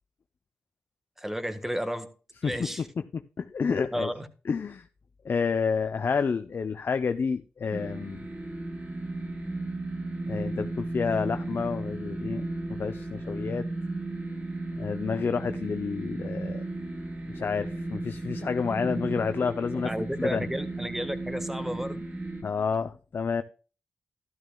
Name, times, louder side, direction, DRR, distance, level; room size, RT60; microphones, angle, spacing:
voice 1, 1.2-2.1 2.4-2.9 3.9-4.3 19.8-22.0, equal, 5° right, 1.4 m, -32 dB
voice 2, 3.1-4.1 4.5-4.9 5.2-8.3 10.3-13.7 14.8-16.6 17.3-20.5 22.4-23.4, left 5 dB, 60° left, 0.6 m, -29 dB
sound 1, 7.7-22.4, right 2 dB, 30° right, 3.3 m, -35 dB
12.5 x 12.5 x 2.3 m
cardioid pair, 50°, 4 cm